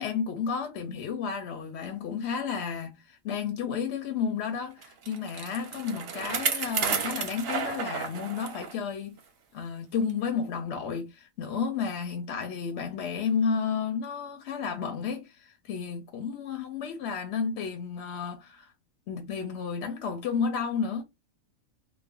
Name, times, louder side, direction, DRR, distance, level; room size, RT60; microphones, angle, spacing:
voice 1, 0.0-9.2 9.5-18.7 19.1-21.0, left 6 dB, 65° left, 0.8 m, -32 dB
Bicycle, 4.8-8.8 9.2-9.3 10.1-10.2, right 6 dB, 60° right, 0.8 m, -32 dB
2.4 x 2.1 x 3.4 m
omnidirectional pair, 1.4 m